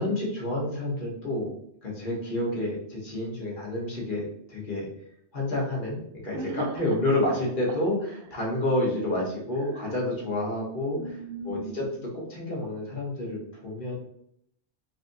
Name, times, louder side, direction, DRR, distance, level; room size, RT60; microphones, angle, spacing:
voice 1, 0.0-1.5 1.8-4.9 5.3-8.0 8.3-11.0 11.4-11.9 12.1-13.9, left 1 dB, 50° left, -3 dB, 1.2 m, -29 dB
voice 2, 6.3-7.0 7.3-7.4 8.1-8.3 9.6-10.0 11.0-11.9, right 3 dB, 90° right, 5 dB, 0.9 m, -38 dB
4.1 x 2.6 x 2.6 m, 0.70 s
omnidirectional pair, 1.2 m